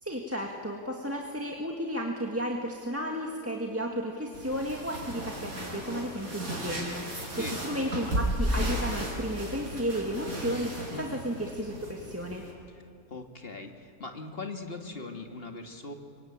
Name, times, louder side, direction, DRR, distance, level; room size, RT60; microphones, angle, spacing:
voice 1, 0.0-12.4, equal, 10° right, 0 dB, 1.8 m, -33 dB
sound 1, 4.3-12.5, equal, 70° right, 5.3 m, -34 dB
voice 2, 7.2-7.6 10.9-11.2 13.1-15.9, left 3 dB, 40° left, 4 dB, 2.1 m, -40 dB
26.5 x 24.0 x 8.9 m, 2.3 s
omnidirectional pair, 1.6 m